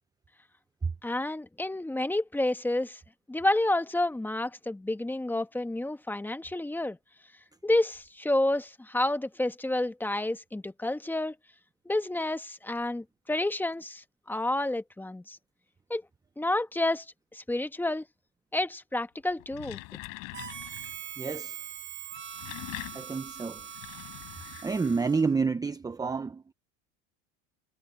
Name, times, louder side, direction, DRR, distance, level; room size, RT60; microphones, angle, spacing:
voice 1, 1.0-3.0 3.3-7.0 7.6-11.4 11.8-15.4 15.9-16.0 16.4-17.1 17.3-18.1 18.5-19.8, left 1 dB, 5° left, 1.2 m, -29 dB
sound 1, 19.3-21.0 22.1-25.2, left 28 dB, 60° left, 3.9 m, -44 dB
Harmonica, 20.3-25.4, right 9 dB, 30° right, 1.8 m, -42 dB
voice 2, 21.2-21.6 22.9-23.6 24.6-26.4, right 4 dB, 10° right, 0.8 m, -29 dB
supercardioid pair, 125°, 36 cm